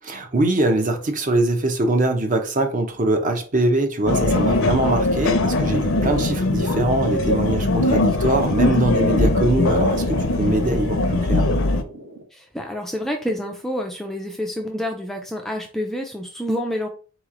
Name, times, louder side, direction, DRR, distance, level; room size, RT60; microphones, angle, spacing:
voice 1, 0.1-11.5, right 2 dB, 35° right, 0.7 m, -22 dB
sound 1, 4.1-11.8, left 2 dB, 60° left, 0.6 m, -21 dB
sound 2, 4.7-12.2, right 1 dB, 60° right, 1.1 m, -43 dB
voice 2, 12.3-16.9, equal, ahead, 0.4 m, -28 dB
4.0 x 3.0 x 3.7 m
head